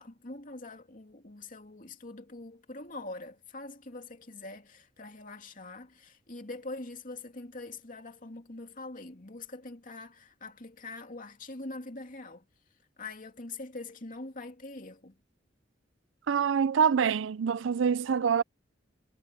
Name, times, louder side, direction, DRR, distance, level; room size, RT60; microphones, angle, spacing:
voice 1, 0.0-12.4 13.0-15.2, left 2 dB, 45° left, 2.7 m, -43 dB
voice 2, 16.3-18.4, right 7 dB, 75° right, 0.4 m, -25 dB
head